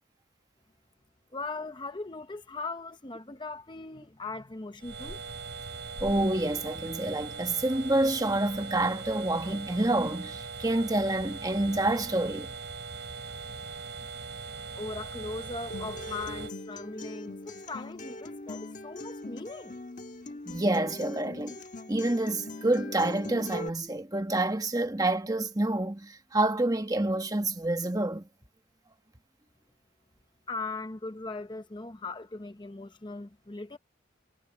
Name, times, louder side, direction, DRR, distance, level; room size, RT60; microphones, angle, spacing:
voice 1, 1.3-5.2 14.7-19.8 30.5-33.8, left 3 dB, 25° left, 0.8 m, -39 dB
sound 1, 4.8-16.5, right 4 dB, 60° right, 5.7 m, -40 dB
voice 2, 6.0-12.5 20.5-21.5 21.9-28.3, right 2 dB, 20° right, 1.3 m, -28 dB
Acoustic guitar, 15.7-23.7, left 2 dB, 40° left, 1.3 m, -41 dB
head